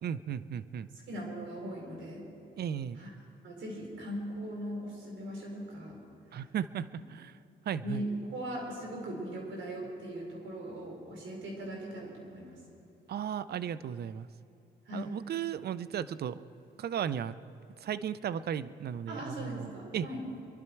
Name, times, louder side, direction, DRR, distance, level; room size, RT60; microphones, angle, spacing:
voice 1, 0.0-0.9 2.6-3.0 6.3-7.4 7.7-8.0 13.1-14.3 14.9-16.4 16.8-17.4 17.8-20.1, right 9 dB, 55° right, 16 dB, 0.6 m, -35 dB
voice 2, 1.1-2.2 3.0-3.1 3.4-6.0 7.8-12.6 14.9-15.1 19.1-20.2, right 1 dB, 70° right, -1 dB, 4.6 m, -39 dB
25.5 x 11.5 x 4.6 m, 2.8 s
cardioid pair, 90°, 20 cm